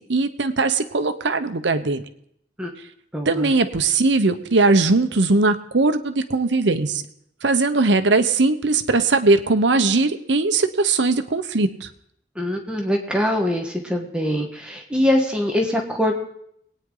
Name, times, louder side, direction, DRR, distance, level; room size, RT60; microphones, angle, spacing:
voice 1, 0.1-2.0 3.3-7.0 7.4-11.9, right 3 dB, 80° right, 10 dB, 0.9 m, -19 dB
voice 2, 3.1-3.5 12.3-16.1, left 1 dB, 5° right, 0 dB, 1.3 m, -23 dB
22.0 x 9.4 x 3.9 m, 0.72 s
head